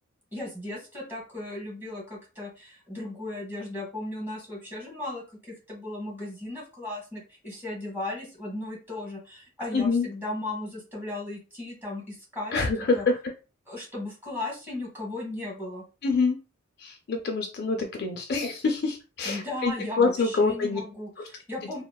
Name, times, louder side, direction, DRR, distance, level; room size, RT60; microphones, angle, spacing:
voice 1, 0.3-13.0 13.7-15.8 19.2-21.8, left 2 dB, 10° right, -3 dB, 1.2 m, -36 dB
voice 2, 9.7-10.1 12.5-13.2 16.0-16.4 16.8-20.8, left 4 dB, 50° left, 3 dB, 0.4 m, -26 dB
3.0 x 2.1 x 2.2 m, 0.32 s
head